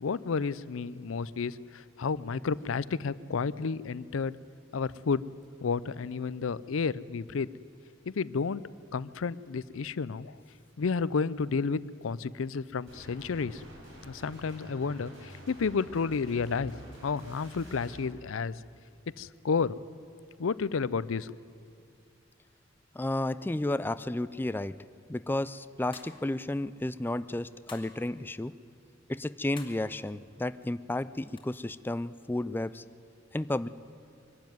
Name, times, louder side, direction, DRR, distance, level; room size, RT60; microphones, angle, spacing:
voice 1, 0.0-4.4 4.7-5.2 5.6-7.5 8.1-8.6 8.9-10.4 10.8-13.6 14.0-16.7 17.0-18.6 19.2-19.8 20.4-21.4, left 5 dB, 85° left, 19 dB, 0.5 m, -31 dB
sound 1, 12.9-18.1, right 1 dB, 85° right, 5.7 m, -49 dB
voice 2, 23.0-24.8 25.1-28.5 29.1-32.8 33.3-33.7, left 1 dB, 10° left, 14 dB, 0.4 m, -32 dB
sound 2, 25.9-26.4 27.7-28.0 29.6-29.9 31.4-31.5, left 5 dB, 25° left, 2.3 m, -49 dB
23.0 x 12.0 x 9.4 m, 2.6 s
head